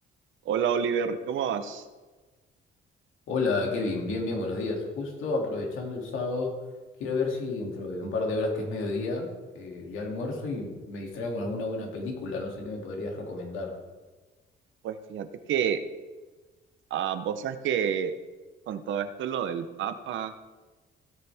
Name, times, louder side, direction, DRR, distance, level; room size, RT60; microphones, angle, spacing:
voice 1, 0.4-1.8 14.8-15.8 16.9-18.1 18.7-20.3, right 8 dB, 75° right, 10 dB, 0.9 m, -29 dB
voice 2, 3.3-6.6 7.0-9.3 9.5-13.8, left 3 dB, 85° left, 0 dB, 2.5 m, -31 dB
16.5 x 6.9 x 3.5 m, 1.3 s
cardioid pair, 90°, 20 cm